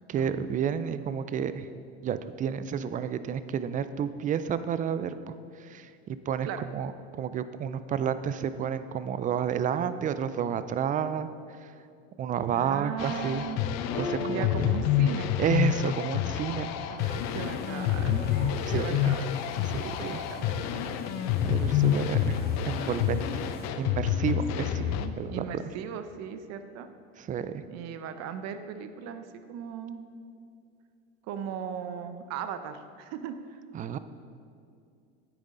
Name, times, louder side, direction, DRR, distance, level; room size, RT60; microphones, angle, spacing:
voice 1, 0.1-1.7 2.0-5.2 5.6-11.3 11.6-11.7 12.2-13.5 14.0-14.6 15.4-16.9 18.7-19.0 19.6-20.2 21.4-22.4 22.6-23.4 23.8-24.8 25.2-25.6 27.2-27.6 33.7-34.0, right 8 dB, 25° right, 13 dB, 0.4 m, -30 dB
voice 2, 12.5-13.6 14.3-15.3 16.9-18.2 18.7-19.4 19.8-21.0 24.6-26.9 27.7-30.0 31.3-33.6, right 8 dB, 50° right, 9 dB, 0.8 m, -38 dB
sound 1, 13.0-25.1, left 10 dB, 55° left, 0.6 m, -28 dB
Piano, 13.9-20.8, left 2 dB, 85° left, 1.9 m, -43 dB
sound 2, 17.0-23.7, left 2 dB, 30° left, 1.6 m, -43 dB
9.5 x 9.0 x 3.8 m, 2.5 s
supercardioid pair, 105°, 33 cm